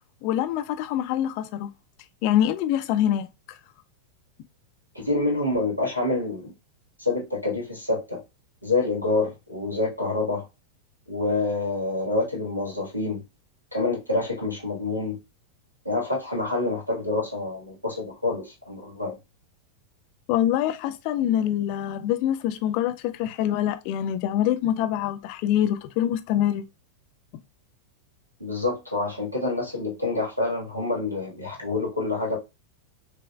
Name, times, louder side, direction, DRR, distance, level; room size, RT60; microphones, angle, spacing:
voice 1, 0.2-1.7 2.2-3.6 20.3-26.6, left 11 dB, 45° left, 0.4 m, -25 dB
voice 2, 4.9-6.5 7.0-8.2 8.6-10.4 11.1-13.2 13.7-15.2 15.8-19.1 28.4-32.4, left 3 dB, 90° right, 1.4 m, -27 dB
6.1 x 2.3 x 2.2 m
figure-of-eight pair, 90°, 0 cm